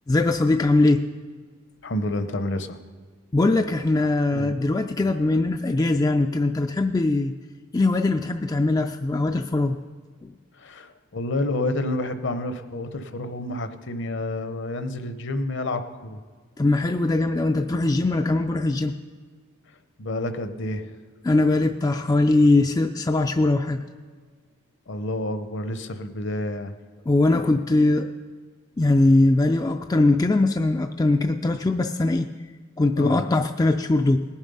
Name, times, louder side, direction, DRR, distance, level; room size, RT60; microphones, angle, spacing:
voice 1, 0.1-1.1 3.3-7.3 7.7-9.8 10.2-10.3 16.6-18.9 21.2-23.8 27.1-28.1 28.8-32.3 32.8-34.2, left 2 dB, 15° left, 6 dB, 0.3 m, -21 dB
voice 2, 1.8-2.8 4.3-4.5 10.5-16.2 20.0-21.0 24.9-26.7 33.0-33.2, left 1 dB, 55° left, 9 dB, 0.8 m, -29 dB
19.0 x 7.2 x 5.5 m, 1.6 s
head